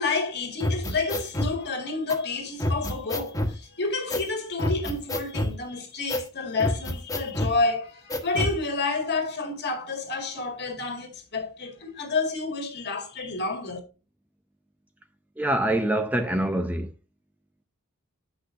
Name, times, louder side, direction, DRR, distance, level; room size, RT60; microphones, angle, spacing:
voice 1, 0.0-13.8, left 3 dB, 50° left, 2.2 m, -29 dB
sound 1, 0.6-1.5 2.1-2.2 2.6-3.5 4.1-4.3 4.6-5.6 6.1-6.3 6.6-7.5 8.1-8.6, left 1 dB, 15° left, 1.5 m, -27 dB
voice 2, 15.4-16.9, right 1 dB, 5° right, 0.6 m, -25 dB
9.7 x 6.3 x 2.7 m
head